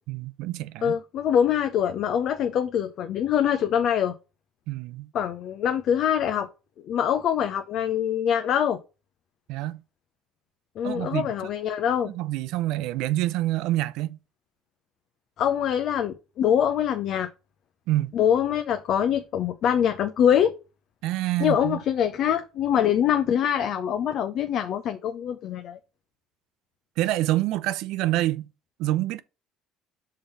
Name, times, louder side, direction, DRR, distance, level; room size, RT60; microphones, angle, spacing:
voice 1, 0.1-1.0 4.7-5.1 9.5-9.8 10.8-11.3 12.0-14.2 17.9-18.1 21.0-21.8 27.0-28.5 28.8-29.2, right 15 dB, 75° right, 0.5 m, -27 dB
voice 2, 0.8-4.1 5.1-6.5 6.8-8.8 10.8-12.1 15.4-17.3 18.1-20.5 21.4-25.8, left 9 dB, 60° left, 0.6 m, -24 dB
5.2 x 3.8 x 5.4 m
hypercardioid pair, 70°, 0 cm